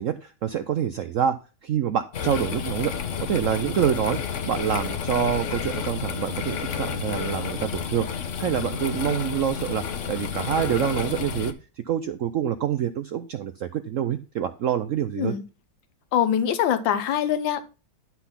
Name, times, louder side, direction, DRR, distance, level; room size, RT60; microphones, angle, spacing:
voice 1, 0.0-2.9 3.2-4.2 4.5-9.8 10.1-11.5 11.9-15.3, right 9 dB, 75° right, 0.7 m, -26 dB
sound 1, 2.1-11.5, left 7 dB, 55° left, 1.0 m, -30 dB
voice 2, 16.1-17.7, left 9 dB, 85° left, 1.5 m, -23 dB
12.0 x 4.0 x 5.7 m
omnidirectional pair, 2.0 m